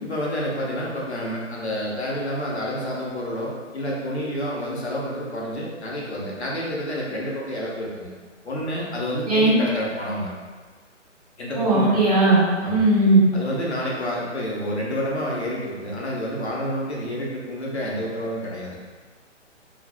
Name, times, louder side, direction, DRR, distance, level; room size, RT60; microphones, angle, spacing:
voice 1, 0.0-8.1 8.4-10.3 11.4-12.0 12.6-12.9 13.3-18.8, equal, 60° left, -5 dB, 1.2 m, -29 dB
voice 2, 11.5-13.2, right 2 dB, 30° right, -7 dB, 0.9 m, -18 dB
5.0 x 3.2 x 2.2 m, 1.5 s
figure-of-eight pair, 140°, 38 cm